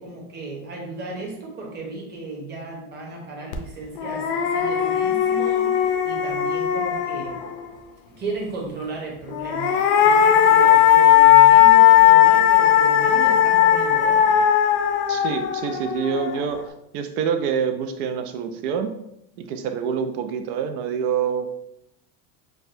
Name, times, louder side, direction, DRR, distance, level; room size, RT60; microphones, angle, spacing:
voice 1, 0.0-7.4 8.2-14.4, right 3 dB, 20° right, -1 dB, 0.9 m, -35 dB
sound 1, 3.5-3.6 4.0-7.7 9.3-16.6, left 11 dB, 45° left, 0.4 m, -17 dB
voice 2, 15.1-18.9 19.4-21.5, right 7 dB, 85° right, 7 dB, 0.6 m, -26 dB
6.2 x 2.3 x 2.6 m, 0.80 s
cardioid pair, 165°, 45 cm